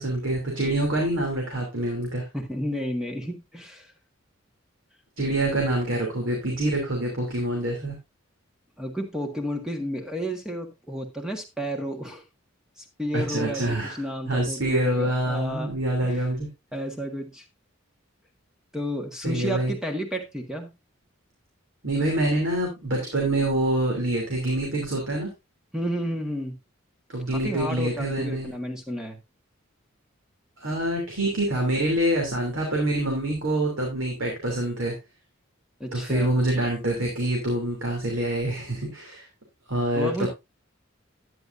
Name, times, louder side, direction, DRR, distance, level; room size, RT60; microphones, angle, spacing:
voice 1, 0.0-2.2 5.2-7.9 13.1-16.5 19.2-19.7 21.8-25.3 27.1-28.5 30.6-34.9 35.9-39.3 39.7-40.3, right 1 dB, 70° right, 0 dB, 2.9 m, -26 dB
voice 2, 2.3-3.9 8.8-12.2 12.8-15.7 16.0-16.3 16.7-17.4 18.7-20.7 25.7-26.6 27.3-29.2 35.8-36.3 39.9-40.3, equal, 5° right, 4 dB, 1.6 m, -32 dB
10.5 x 9.8 x 2.6 m, 0.22 s
head